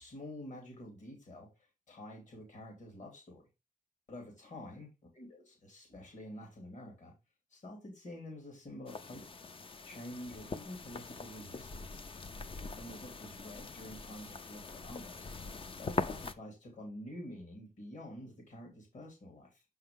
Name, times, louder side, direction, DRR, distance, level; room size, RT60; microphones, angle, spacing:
voice 1, 0.0-1.5 1.9-3.5 4.1-4.9 5.1-7.1 7.5-9.3 9.8-12.0 12.7-15.3 15.8-19.6, left 1 dB, 55° left, 2.9 m, -48 dB
sound 1, 8.9-16.3, left 4 dB, 35° left, 0.5 m, -42 dB
6.9 x 5.6 x 3.6 m
wide cardioid pair, 155°, 16 cm